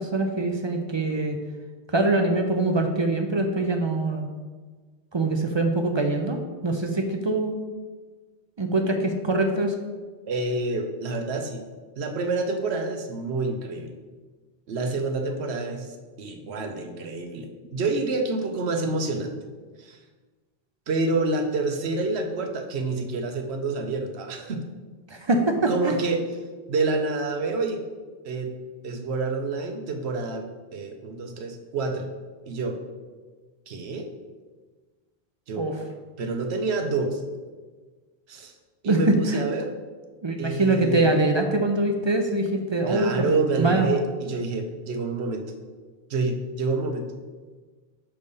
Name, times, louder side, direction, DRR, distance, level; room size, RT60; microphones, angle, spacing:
voice 1, 0.0-1.4 1.9-4.3 5.1-7.6 8.6-9.8 25.1-26.0 35.6-35.8 38.9-39.4 40.2-43.3 43.6-43.9, right 2 dB, 40° right, 5 dB, 0.4 m, -23 dB
voice 2, 10.3-11.6 12.0-13.9 14.7-15.9 16.2-19.3 19.8-20.0 20.9-24.6 25.7-26.2 26.7-27.8 28.2-28.5 28.8-30.5 30.7-32.1 32.5-32.8 33.7-34.1 35.5-35.7 36.2-37.2 38.3-38.5 38.8-39.7 40.4-41.1 42.9-45.5 46.1-47.1, right 3 dB, 85° right, 5 dB, 1.0 m, -28 dB
6.6 x 3.4 x 5.3 m, 1.4 s
omnidirectional pair, 1.1 m